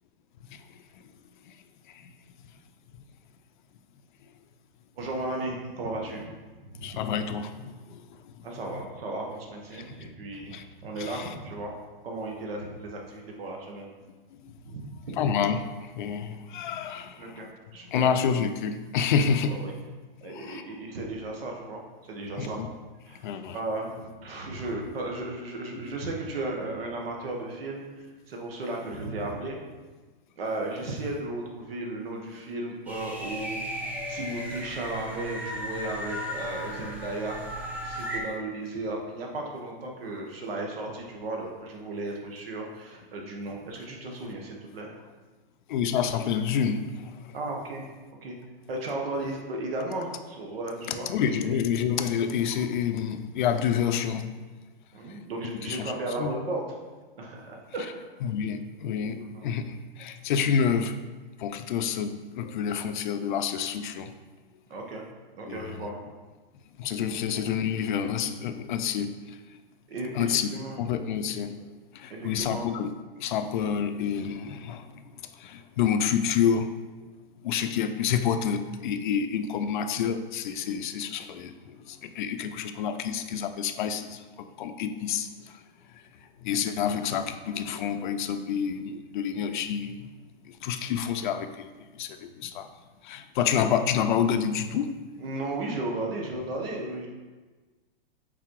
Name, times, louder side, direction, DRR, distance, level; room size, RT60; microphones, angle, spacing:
voice 1, 5.0-6.4 6.6-7.0 8.4-11.7 12.0-13.9 14.6-15.3 17.2-18.1 19.5-19.7 20.2-22.6 23.1-27.8 28.3-29.6 30.4-33.6 34.1-44.9 47.3-47.8 48.2-48.4 48.7-51.6 54.9-56.6 57.2-57.9 59.1-59.5 64.7-65.0 65.3-66.0 69.9-70.8 72.1-72.6 95.2-97.1, right 2 dB, 75° right, 0 dB, 1.7 m, -35 dB
voice 2, 6.8-8.0 8.7-8.8 9.7-9.8 10.5-10.6 11.0-11.3 14.4-14.5 15.2-17.5 17.9-19.6 20.2-20.6 22.4-22.7 23.2-23.6 38.0-38.1 45.7-47.4 50.9-54.3 55.6-55.9 56.2-56.3 58.2-60.9 61.4-64.1 65.5-65.8 66.8-69.4 70.1-70.5 70.8-71.5 71.9-72.9 73.2-75.1 75.4-76.7 77.4-85.6 86.4-90.1 90.4-91.7 92.0-92.7 93.0-94.9, left 7 dB, 55° left, 8 dB, 0.6 m, -28 dB
sound 1, 32.9-38.2, equal, 5° right, 0.7 m, -35 dB
5.9 x 4.2 x 4.8 m, 1.3 s
hypercardioid pair, 150°, 30 cm